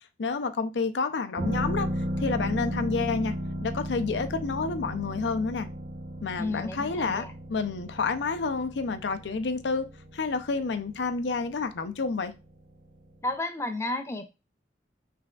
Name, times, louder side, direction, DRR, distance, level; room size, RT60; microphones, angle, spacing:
voice 1, 0.2-1.9 2.2-3.4 3.6-5.7 6.2-12.3, left 4 dB, 85° left, 0.5 m, -29 dB
Horror Piano Note, 1.4-12.9 13.2-13.3, equal, 50° right, 0.8 m, -35 dB
voice 2, 6.4-7.3 13.2-14.2, left 2 dB, 15° left, 0.4 m, -32 dB
5.8 x 3.4 x 2.3 m
head